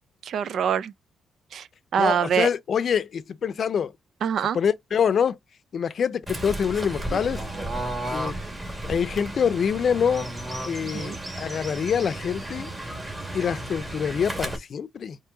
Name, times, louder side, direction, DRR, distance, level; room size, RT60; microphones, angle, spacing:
voice 1, 0.2-0.9 1.5-1.7 1.9-2.5 4.2-4.6 10.8-11.2, right 8 dB, 65° right, 0.3 m, -24 dB
voice 2, 2.0-3.9 4.5-5.4 5.7-7.4 8.1-8.4 8.9-10.3 10.7-12.7 13.3-15.2, left 7 dB, 55° left, 0.5 m, -25 dB
Fowl / Bird, 6.3-14.6, right 1 dB, 20° right, 2.1 m, -33 dB
4.6 x 2.7 x 3.9 m
cardioid pair, 85°, 0 cm